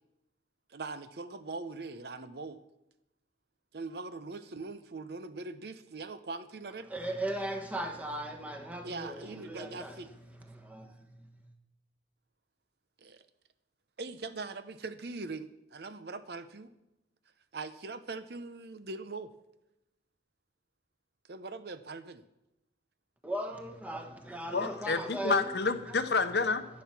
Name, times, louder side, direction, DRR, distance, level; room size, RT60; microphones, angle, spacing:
voice 1, 0.7-2.6 3.7-6.9 8.8-10.1 13.0-13.2 14.0-16.7 17.5-19.3 21.3-22.2, right 3 dB, 60° right, 12 dB, 0.7 m, -41 dB
voice 2, 6.9-10.0 10.5-10.9 23.2-25.5 25.9-26.0, right 1 dB, 10° right, 3 dB, 1.3 m, -37 dB
voice 3, 24.5-26.7, left 4 dB, 60° left, 10 dB, 0.8 m, -29 dB
11.5 x 10.5 x 5.9 m, 0.90 s
head